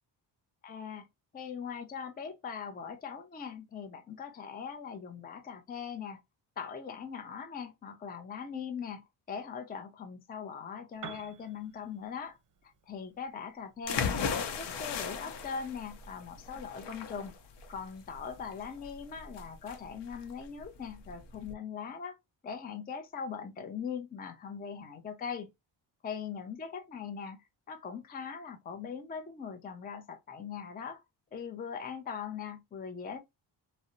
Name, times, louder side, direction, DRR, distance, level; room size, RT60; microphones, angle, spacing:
voice 1, 0.6-1.1 1.3-6.2 6.6-12.4 12.6-17.3 17.7-22.2 22.4-25.5 26.0-27.4 27.7-31.0 31.3-33.2, left 6 dB, 20° left, 0.4 m, -41 dB
Piano, 10.9-18.7, right 7 dB, 45° right, 0.7 m, -55 dB
sound 1, 13.9-21.5, left 6 dB, 65° left, 0.6 m, -37 dB
2.6 x 2.0 x 2.5 m
cardioid pair, 105°, 45 cm